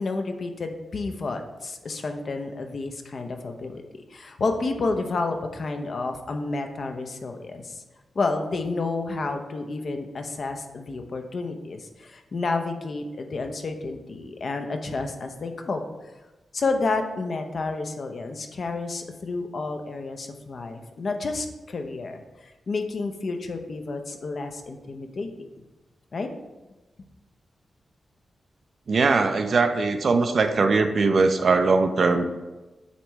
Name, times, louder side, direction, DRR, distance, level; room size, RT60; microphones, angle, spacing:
voice 1, 0.0-7.8 8.1-15.9 16.5-25.5 26.1-26.3, left 3 dB, 50° left, 5 dB, 0.7 m, -30 dB
voice 2, 28.9-32.3, right 4 dB, 50° right, 7 dB, 0.5 m, -21 dB
8.2 x 3.1 x 4.5 m, 1.1 s
wide cardioid pair, 155°, 0 cm